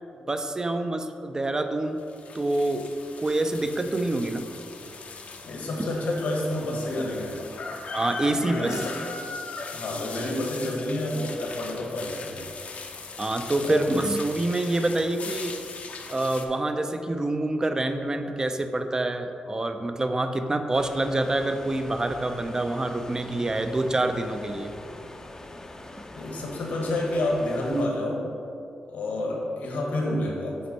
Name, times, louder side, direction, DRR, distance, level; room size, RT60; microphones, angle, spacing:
voice 1, 0.3-2.0 2.3-2.9 3.2-4.5 7.9-8.8 13.2-15.6 16.1-24.7, right 2 dB, 25° right, 7 dB, 0.5 m, -26 dB
sound 1, 2.0-16.5, left 4 dB, 60° left, 0.6 m, -39 dB
voice 2, 5.4-7.4 8.4-9.2 9.7-12.5 13.6-13.8 26.2-28.3 28.9-30.6, left 1 dB, 80° left, -1 dB, 1.3 m, -29 dB
sound 2, 20.7-27.9, left 1 dB, 25° left, 0.5 m, -43 dB
7.7 x 4.2 x 4.1 m, 2.7 s
cardioid pair, 75°, 3 cm